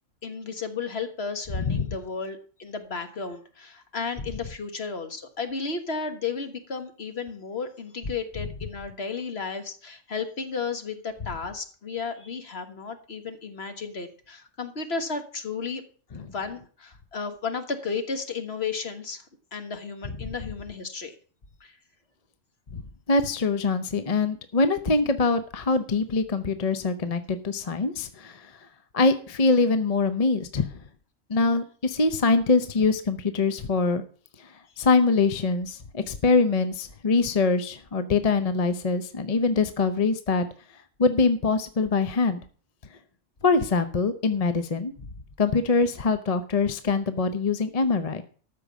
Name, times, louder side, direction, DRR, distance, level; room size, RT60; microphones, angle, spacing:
voice 1, 0.2-15.8 16.2-19.3 19.5-21.1 21.6-21.8, left 5 dB, 55° left, 8 dB, 1.6 m, -33 dB
voice 2, 23.1-28.7 28.9-30.8 31.3-34.0 34.4-40.5 40.7-42.4 43.4-44.9 45.4-48.2, left 3 dB, 35° left, 10 dB, 0.8 m, -24 dB
13.5 x 5.4 x 7.3 m, 0.42 s
omnidirectional pair, 1.3 m